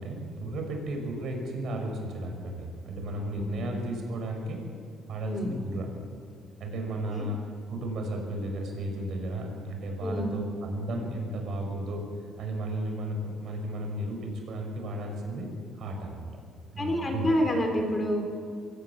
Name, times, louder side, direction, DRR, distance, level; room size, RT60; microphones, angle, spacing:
voice 1, 0.0-4.6 5.1-5.9 6.6-15.5 15.7-16.3 16.7-17.3, right 1 dB, 55° right, 2 dB, 6.1 m, -34 dB
voice 2, 3.3-3.7 5.2-5.6 7.1-7.3 10.0-10.4 16.8-18.2, equal, 20° left, 4 dB, 3.6 m, -28 dB
22.5 x 17.0 x 8.8 m, 2.4 s
cardioid pair, 140°, 0 cm